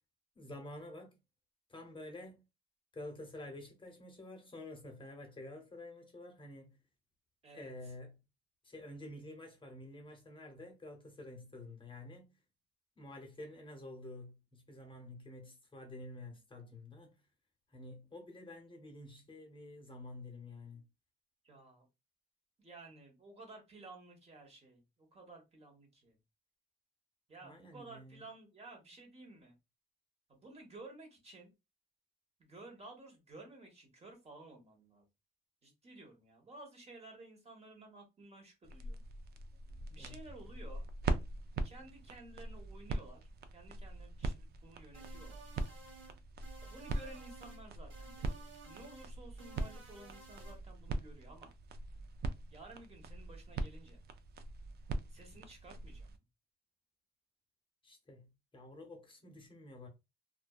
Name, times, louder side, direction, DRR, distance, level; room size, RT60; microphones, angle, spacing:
voice 1, 0.4-1.2 1.7-2.4 2.9-6.8 7.5-8.2 8.6-12.3 13.0-17.2 17.7-20.9 27.4-28.2 39.9-40.2 57.8-59.9, left 2 dB, 25° left, 0.8 m, -49 dB
voice 2, 21.4-21.9 22.6-26.2 27.3-29.5 30.3-31.5 32.4-35.0 35.6-39.0 39.9-40.8 41.6-43.2 43.5-45.4 46.6-51.5 52.5-54.0 55.1-56.2, right 2 dB, 30° right, 1.1 m, -54 dB
sound 1, 38.6-56.2, right 2 dB, 55° right, 0.4 m, -42 dB
sound 2, 44.9-46.1 46.4-47.6 47.9-49.1 49.4-50.6, right 4 dB, 70° right, 1.4 m, -55 dB
2.5 x 2.2 x 2.2 m
cardioid pair, 90°, 20 cm